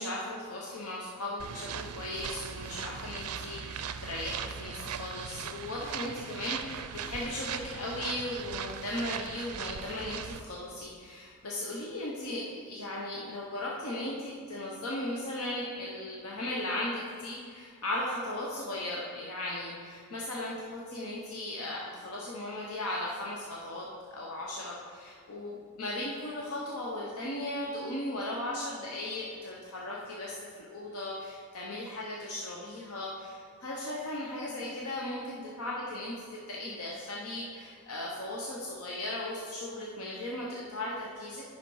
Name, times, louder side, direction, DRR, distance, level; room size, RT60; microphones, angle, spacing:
voice 1, 0.0-41.4, left 1 dB, 70° left, -4 dB, 1.0 m, -37 dB
sound 1, 1.4-10.4, right 7 dB, 80° right, 0.5 m, -39 dB
10.5 x 5.8 x 4.8 m, 2.2 s
head